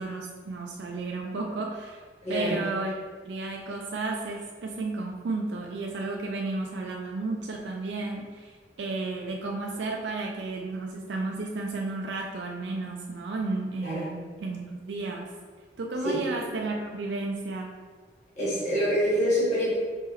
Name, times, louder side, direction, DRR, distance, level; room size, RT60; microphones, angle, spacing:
voice 1, 0.0-2.0 2.3-2.9 3.3-15.3 15.8-17.7, right 3 dB, 80° right, 0 dB, 0.4 m, -33 dB
voice 2, 2.2-2.6 13.8-14.1 16.0-16.2 18.4-19.8, equal, 40° left, -9 dB, 1.3 m, -26 dB
4.1 x 3.7 x 3.0 m, 1.5 s
head